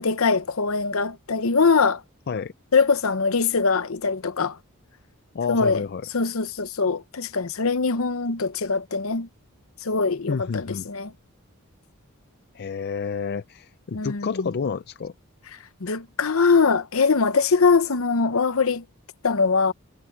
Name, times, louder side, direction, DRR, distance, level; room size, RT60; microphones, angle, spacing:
voice 1, 0.0-2.0 2.7-4.6 5.5-5.8 6.1-9.3 9.8-11.1 13.9-14.5 15.8-18.8 19.2-19.7, left 4 dB, 65° left, 0.9 m, -22 dB
voice 2, 5.3-6.1 10.3-10.9 12.5-15.1, left 5 dB, 50° left, 0.4 m, -29 dB
head